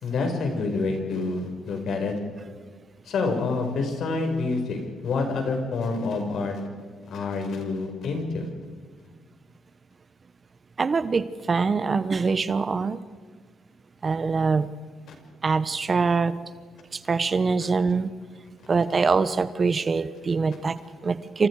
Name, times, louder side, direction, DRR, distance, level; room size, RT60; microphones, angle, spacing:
voice 1, 0.0-2.1 3.1-6.6 7.0-8.5, left 3 dB, 70° left, 4 dB, 5.4 m, -27 dB
voice 2, 10.8-13.0 14.0-14.7 15.4-16.4 16.9-18.1 18.7-21.5, right 4 dB, 35° right, 14 dB, 1.0 m, -24 dB
28.5 x 26.5 x 4.9 m, 1.5 s
cardioid pair, 90°, 0 cm